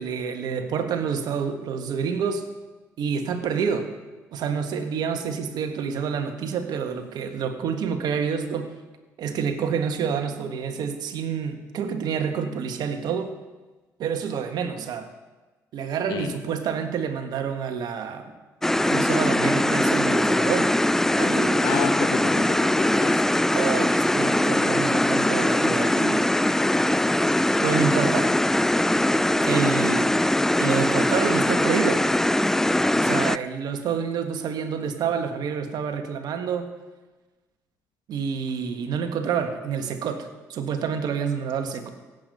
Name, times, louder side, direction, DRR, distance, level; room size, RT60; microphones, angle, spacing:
voice 1, 0.0-2.5 3.0-3.9 4.3-8.7 9.2-13.3 14.0-15.1 15.7-18.3 18.9-20.7 21.2-21.8 23.5-26.3 27.6-28.3 29.4-30.1 30.6-32.1 33.0-36.7 38.1-41.9, right 6 dB, 65° right, 7 dB, 1.5 m, -28 dB
sound 1, 18.6-33.4, left 1 dB, 5° left, 0.3 m, -21 dB
voice 2, 21.6-23.2, left 8 dB, 75° left, 7 dB, 1.4 m, -30 dB
16.5 x 8.1 x 5.5 m, 1.2 s
hypercardioid pair, 55°, 7 cm